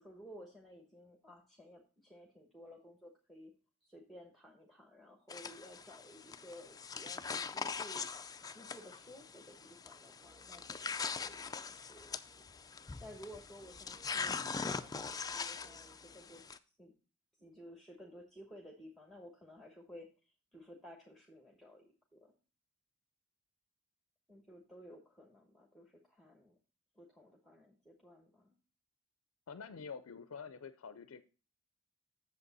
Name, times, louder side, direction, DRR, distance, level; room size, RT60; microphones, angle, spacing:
voice 1, 0.0-3.5 3.8-8.1 8.5-12.4 13.0-16.4 16.8-16.9 17.4-22.3 24.3-26.5 26.9-28.6, equal, ahead, 0 dB, 1.1 m, -55 dB
sound 1, 5.3-16.6, left 5 dB, 20° left, 0.4 m, -42 dB
sound 2, 10.2-16.2, right 2 dB, 45° right, 0.7 m, -65 dB
voice 2, 29.5-31.2, left 5 dB, 75° left, 11 dB, 0.5 m, -47 dB
8.0 x 6.9 x 4.0 m, 0.36 s
head